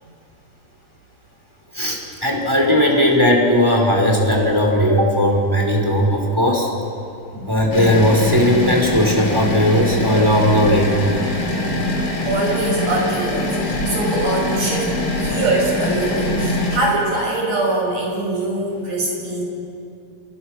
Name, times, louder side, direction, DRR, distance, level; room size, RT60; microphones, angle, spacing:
voice 1, 1.7-6.7 7.5-10.9, equal, 5° right, -1 dB, 4.7 m, -17 dB
sound 1, 7.7-16.8, left 1 dB, 40° left, 4.3 m, -23 dB
voice 2, 12.3-19.4, right 2 dB, 60° right, -1 dB, 7.2 m, -23 dB
28.5 x 28.0 x 6.6 m, 2.6 s
omnidirectional pair, 3.4 m